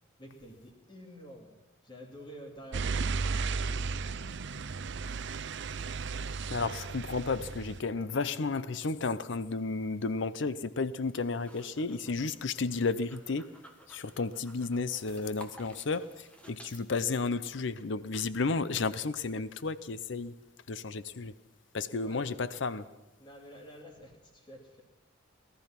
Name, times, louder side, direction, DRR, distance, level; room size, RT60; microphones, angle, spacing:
voice 1, 0.2-1.5 1.8-4.1 21.9-22.5 23.2-24.8, equal, 20° left, 2.6 m, -50 dB
sound 1, 2.7-7.8, right 4 dB, 60° right, 0.6 m, -34 dB
voice 2, 6.5-13.5 13.9-20.3 20.7-21.3 21.7-22.8, left 4 dB, 60° left, 0.6 m, -32 dB
sound 2, 11.0-16.8, equal, 5° left, 1.4 m, -54 dB
18.5 x 13.0 x 5.9 m
head